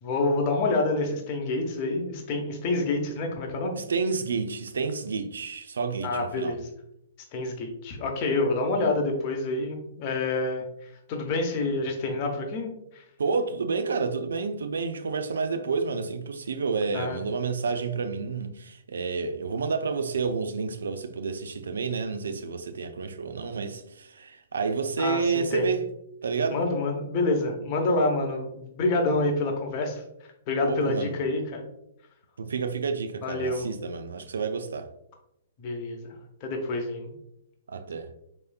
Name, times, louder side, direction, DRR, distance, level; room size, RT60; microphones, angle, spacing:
voice 1, 0.0-3.8 6.0-6.7 7.3-10.6 11.1-12.7 16.9-17.2 25.0-25.7 26.5-30.0 30.5-31.6 33.2-33.7 35.6-36.1 36.4-37.1, left 2 dB, 40° left, 0.8 m, -27 dB
voice 2, 3.8-6.5 13.2-25.9 26.2-26.6 30.6-31.1 32.4-34.9 37.7-38.1, right 4 dB, 70° right, 0.4 m, -29 dB
4.7 x 2.9 x 2.2 m
figure-of-eight pair, 115°, 0 cm